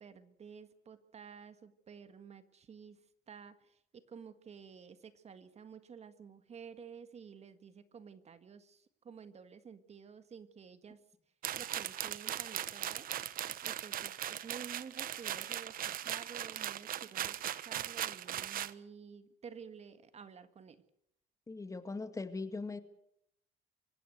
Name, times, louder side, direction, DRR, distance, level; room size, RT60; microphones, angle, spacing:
voice 1, 0.0-3.0 3.3-11.0 11.5-13.1 13.6-20.8, right 6 dB, 40° right, 11 dB, 1.6 m, -52 dB
sound 1, 11.4-18.7, right 11 dB, 55° right, 1.0 m, -39 dB
voice 2, 21.5-22.8, left 3 dB, 20° left, 10 dB, 2.0 m, -40 dB
25.5 x 15.5 x 8.1 m, 0.75 s
cardioid pair, 110°, 17 cm